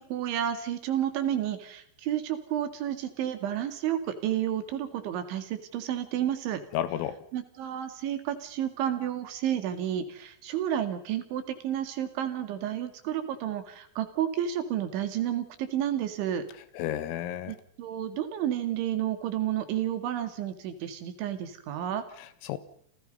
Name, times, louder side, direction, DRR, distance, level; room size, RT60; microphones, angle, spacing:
voice 1, 0.0-6.6 7.3-16.4 17.5-22.0, right 10 dB, 70° right, 4.4 m, -31 dB
voice 2, 6.7-7.2 16.8-17.6 22.2-22.6, left 11 dB, 85° left, 4.2 m, -32 dB
29.0 x 28.0 x 5.5 m
omnidirectional pair, 5.8 m